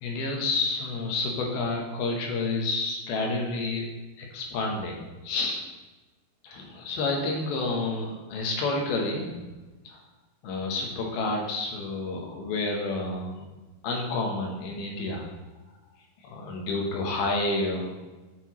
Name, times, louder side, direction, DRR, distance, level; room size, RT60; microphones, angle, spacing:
voice 1, 0.0-3.9 4.2-5.0 5.2-5.6 6.4-9.4 9.9-10.0 10.4-13.5 13.8-15.3 16.2-17.9, left 3 dB, 85° left, 0 dB, 2.9 m, -29 dB
9.4 x 4.6 x 3.0 m, 1.2 s
omnidirectional pair, 4.3 m